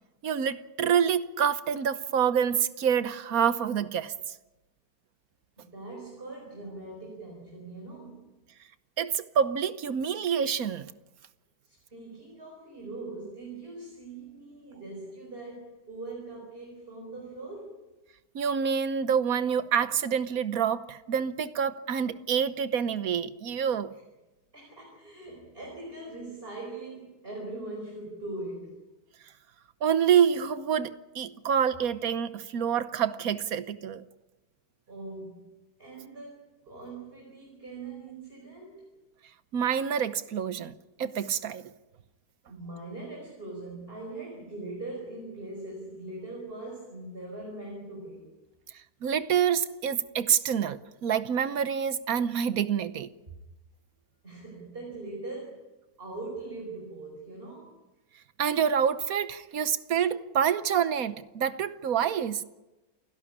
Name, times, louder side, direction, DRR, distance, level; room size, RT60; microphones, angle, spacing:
voice 1, 0.2-4.1 9.0-10.9 18.3-23.9 29.8-34.0 39.5-41.6 49.0-53.1 58.4-62.4, right 8 dB, 70° right, 1.3 m, -27 dB
voice 2, 5.6-8.3 11.6-17.9 24.5-28.8 34.9-35.5 35.8-38.9 42.5-48.3 54.2-55.6 56.0-57.8, right 2 dB, 35° right, 5.2 m, -41 dB
29.0 x 11.5 x 9.9 m
omnidirectional pair, 1.6 m